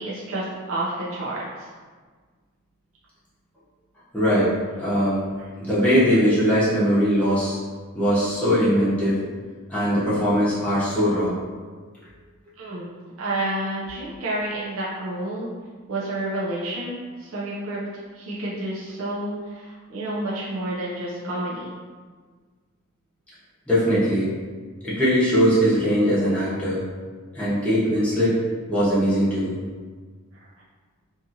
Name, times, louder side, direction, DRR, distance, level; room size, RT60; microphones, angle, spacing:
voice 1, 0.0-1.7 5.4-5.5 12.6-12.9 13.2-15.5 15.9-17.9 18.1-21.7, right 1 dB, 75° right, -6 dB, 0.5 m, -30 dB
voice 2, 4.1-5.2 5.6-7.6 7.9-9.2 9.7-11.3 23.7-24.3 24.8-26.8 27.3-28.4 28.7-29.5, equal, 5° left, -12 dB, 0.8 m, -20 dB
2.6 x 2.4 x 2.7 m, 1.5 s
head